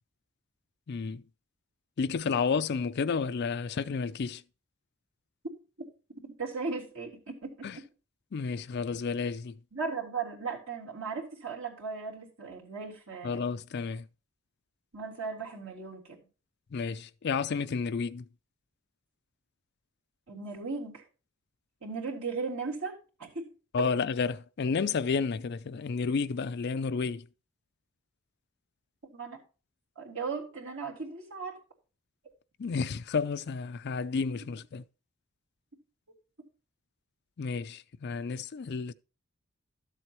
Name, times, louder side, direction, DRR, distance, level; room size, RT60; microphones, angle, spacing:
voice 1, 0.9-1.2 2.0-4.4 7.6-7.8 8.3-9.6 13.2-14.1 16.7-18.2 23.7-27.3 32.6-34.8 37.4-38.9, left 5 dB, 50° left, 0.4 m, -31 dB
voice 2, 6.4-7.8 9.7-13.6 14.9-16.2 20.3-21.0 21.8-23.5 29.0-29.4 30.0-31.6 34.4-34.5, right 4 dB, 70° right, 3.6 m, -37 dB
12.5 x 7.7 x 3.0 m
head